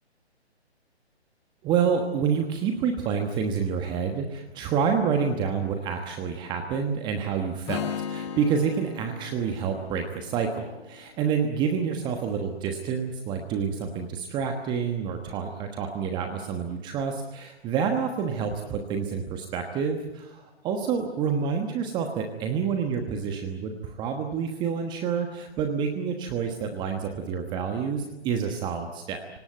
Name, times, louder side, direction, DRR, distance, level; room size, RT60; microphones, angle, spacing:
voice 1, 1.6-29.2, right 6 dB, 15° right, 5 dB, 1.2 m, -28 dB
Strum, 7.7-11.8, left 8 dB, 25° left, 1.4 m, -37 dB
26.5 x 18.0 x 9.3 m, 1.0 s
figure-of-eight pair, 135°, 33 cm